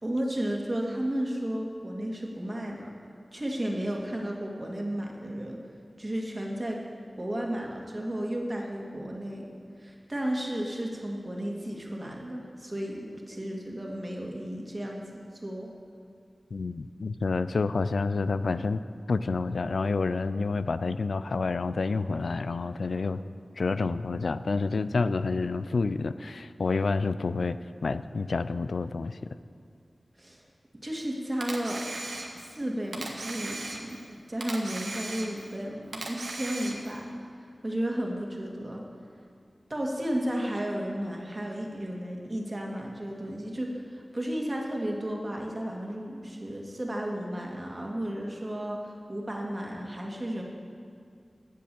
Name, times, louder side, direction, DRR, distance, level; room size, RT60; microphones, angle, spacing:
voice 1, 0.0-2.9 3.3-5.6 6.0-6.8 7.2-9.5 9.8-15.1 15.3-15.7 30.2-30.4 30.8-31.8 32.3-37.1 37.6-38.9 39.7-50.4, right 1 dB, 35° right, 0 dB, 1.9 m, -33 dB
voice 2, 16.5-18.8 19.1-23.2 23.6-27.6 27.8-29.3, left 4 dB, 85° left, 13 dB, 0.3 m, -28 dB
Camera, 31.4-32.5 32.9-34.1 34.4-35.5 35.9-37.0, right 2 dB, 80° right, 1.3 m, -37 dB
10.5 x 7.7 x 6.9 m, 2.3 s
cardioid pair, 45°, 0 cm